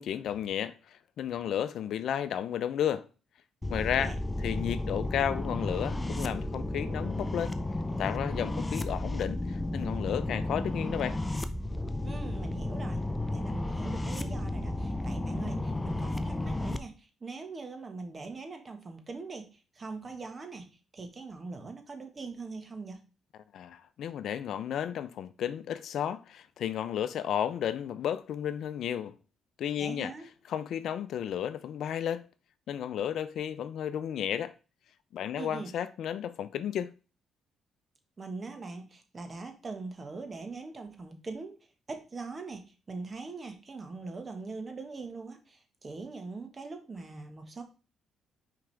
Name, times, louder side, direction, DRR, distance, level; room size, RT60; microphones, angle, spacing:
voice 1, 0.0-3.1 3.7-7.6 8.0-11.2 23.5-29.1 29.6-30.1 30.5-32.3 32.7-34.5 35.1-36.9, left 9 dB, 70° left, 0.5 m, -33 dB
sound 1, 3.6-16.8, left 1 dB, 15° left, 0.6 m, -33 dB
voice 2, 12.0-13.0 13.3-19.5 19.8-20.7 20.9-23.0 29.8-30.3 35.3-35.7 38.2-41.6 41.9-42.6 42.9-47.6, right 3 dB, 30° right, 1.4 m, -41 dB
6.0 x 4.8 x 3.4 m
cardioid pair, 90°, 0 cm